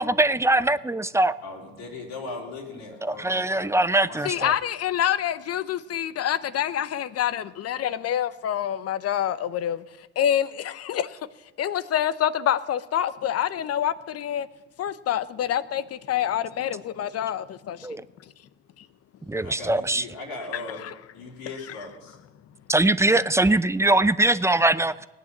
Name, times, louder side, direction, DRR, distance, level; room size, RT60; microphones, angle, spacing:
voice 1, 0.0-1.4 3.2-4.5 17.8-18.0 19.3-20.0 22.7-25.1, right 2 dB, 10° right, 15 dB, 0.6 m, -22 dB
voice 2, 1.4-4.5 19.4-22.2, left 3 dB, 90° left, -4 dB, 3.7 m, -39 dB
voice 3, 4.2-9.8 10.2-11.1 11.6-14.5 14.8-17.8 20.5-20.9, left 10 dB, 55° left, 15 dB, 0.9 m, -26 dB
17.5 x 9.6 x 7.3 m, 1.1 s
supercardioid pair, 70°, 29 cm